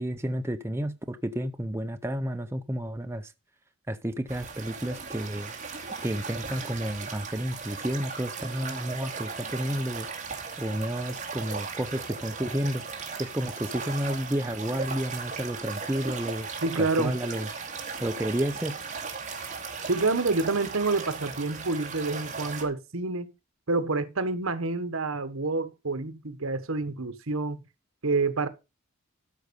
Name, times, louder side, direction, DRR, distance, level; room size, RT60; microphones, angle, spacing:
voice 1, 0.0-3.3 3.9-5.5 6.0-10.1 10.6-12.8 13.2-16.5 16.8-17.5 18.0-18.8, right 1 dB, 10° right, 0.6 m, -31 dB
sound 1, 4.3-22.6, right 5 dB, 35° right, 2.3 m, -37 dB
voice 2, 16.6-17.2 19.9-23.3 23.7-27.6 28.0-28.5, right 3 dB, 70° right, 1.2 m, -28 dB
13.0 x 5.3 x 5.3 m
head